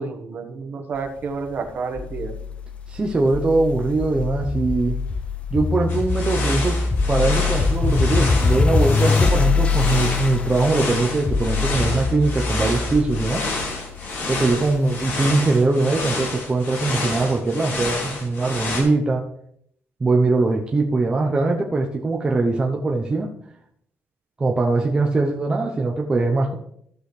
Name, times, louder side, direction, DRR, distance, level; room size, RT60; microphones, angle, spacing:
voice 1, 0.0-2.3 14.5-14.6, right 4 dB, 45° right, 4 dB, 1.3 m, -30 dB
sound 1, 2.0-15.1, left 4 dB, 25° left, 0.5 m, -23 dB
voice 2, 2.9-4.9 5.5-6.8 7.1-13.4 14.3-19.3 20.0-23.3 24.4-26.6, right 3 dB, 20° right, 0 dB, 0.8 m, -21 dB
sound 2, 5.9-18.8, left 2 dB, 60° left, 2.8 m, -29 dB
14.0 x 6.2 x 3.3 m, 0.70 s
cardioid pair, 160°, 5 cm